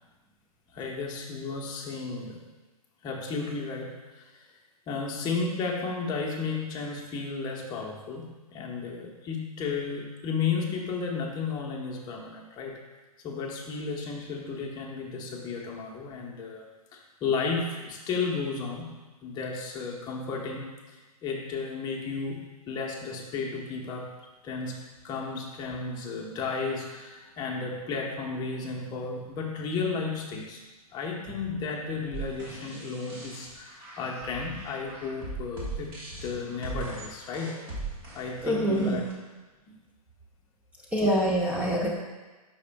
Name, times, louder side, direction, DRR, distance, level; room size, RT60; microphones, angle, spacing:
voice 1, 0.7-2.4 3.0-4.5 4.9-12.8 13.2-16.6 16.9-18.9 19.2-24.1 24.4-30.6 30.9-35.9 36.2-37.6 38.1-39.0 39.7-39.8, left 4 dB, 20° left, -1 dB, 1.0 m, -33 dB
sound 1, 32.1-39.1, right 3 dB, 25° right, 1.5 m, -40 dB
voice 2, 38.4-39.0 40.9-41.9, equal, 5° right, -3 dB, 0.8 m, -25 dB
8.3 x 5.6 x 2.3 m, 1.2 s
hypercardioid pair, 125°, 20 cm